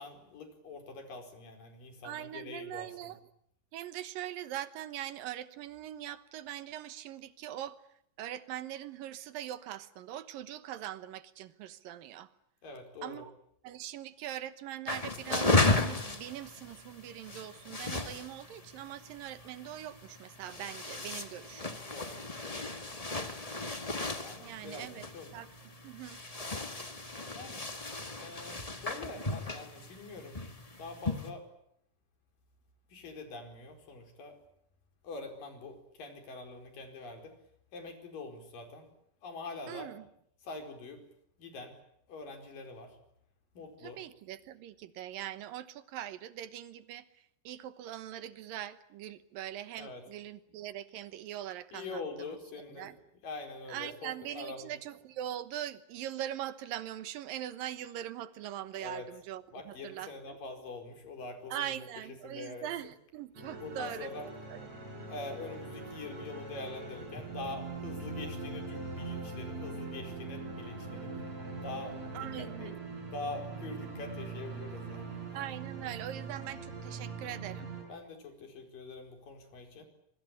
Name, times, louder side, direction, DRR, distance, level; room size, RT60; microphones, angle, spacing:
voice 1, 0.0-3.1 12.6-13.2 21.9-22.8 24.2-25.3 27.3-27.6 28.2-30.4 30.8-31.5 32.9-34.4 35.0-37.3 37.7-38.9 39.2-39.9 40.4-41.0 41.4-41.7 42.1-43.0 43.6-44.0 49.8-50.0 51.7-52.9 53.2-54.7 58.8-59.1 59.5-61.9 62.2-62.7 63.6-64.3 65.1-71.1 71.6-72.7 73.1-75.1 77.9-79.8, left 3 dB, 75° left, 5 dB, 6.2 m, -44 dB
voice 2, 2.0-3.2 3.7-7.8 8.2-12.3 13.0-13.3 13.6-21.8 24.4-25.0 25.3-25.5 25.8-26.2 39.7-40.0 43.8-47.1 47.4-52.3 52.8-53.0 53.7-60.4 61.5-64.1 64.5-64.6 72.1-72.8 75.3-77.7, right 12 dB, 85° right, 13 dB, 2.9 m, -42 dB
sound 1, 14.9-31.3, left 2 dB, 30° left, 0.6 m, -35 dB
sound 2, 63.3-77.8, right 3 dB, 50° right, 8.1 m, -42 dB
sound 3, 67.1-69.3, left 3 dB, 50° left, 5.1 m, -54 dB
25.0 x 24.0 x 8.4 m, 0.71 s
omnidirectional pair, 3.9 m